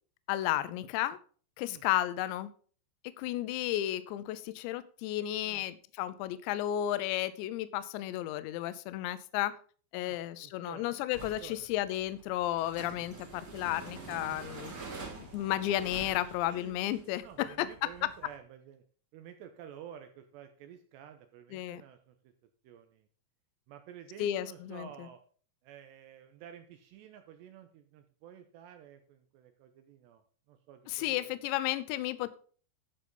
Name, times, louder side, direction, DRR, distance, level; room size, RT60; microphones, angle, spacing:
voice 1, 0.3-1.2 1.6-2.5 3.2-9.5 9.9-14.7 15.2-17.9 21.5-21.8 24.2-25.1 30.9-32.4, left 13 dB, 80° left, 14 dB, 2.7 m, -33 dB
voice 2, 10.0-11.1 11.4-11.7 17.2-18.8 19.1-22.2 22.6-23.1 23.7-25.2 25.6-30.2 30.5-31.4, right 9 dB, 80° right, 7 dB, 2.6 m, -51 dB
sound 1, 11.1-18.4, right 3 dB, 35° right, 1.4 m, -47 dB
12.5 x 6.2 x 5.3 m, 0.43 s
omnidirectional pair, 5.7 m